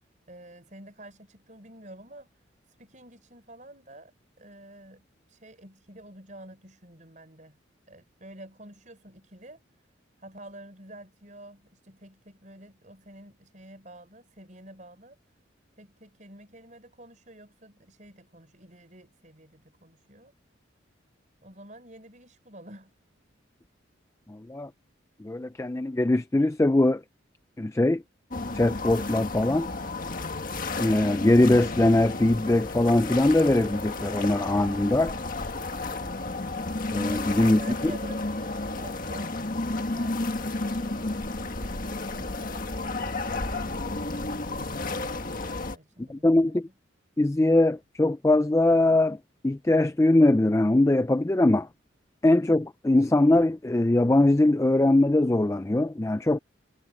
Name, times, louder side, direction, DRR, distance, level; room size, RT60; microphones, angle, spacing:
voice 1, 0.3-7.6 7.9-9.9 10.2-15.2 15.8-20.3 21.4-22.9 35.9-36.2 37.3-39.3 39.7-43.1 44.6-46.7, right 1 dB, 40° right, 5.1 m, -49 dB
voice 2, 24.3-24.7 25.2-27.0 27.6-28.0 28.5-29.7 30.8-35.1 36.9-37.6 46.0-46.7 47.2-49.2 49.4-51.7 52.2-56.4, left 2 dB, 15° left, 0.4 m, -22 dB
sound 1, 28.3-45.8, left 2 dB, 45° left, 1.7 m, -32 dB
head